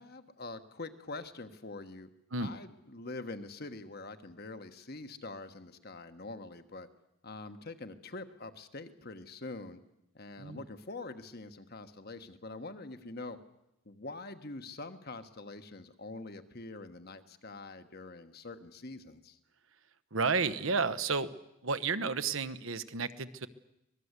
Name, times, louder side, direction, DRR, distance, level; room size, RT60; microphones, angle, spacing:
voice 1, 0.0-2.1 2.4-6.9 7.2-9.8 10.1-13.4 13.8-19.4, left 2 dB, 45° left, 9 dB, 1.3 m, -45 dB
voice 2, 20.1-21.3 21.6-23.5, right 4 dB, 65° right, 13 dB, 1.0 m, -32 dB
25.0 x 19.5 x 8.2 m, 0.85 s
head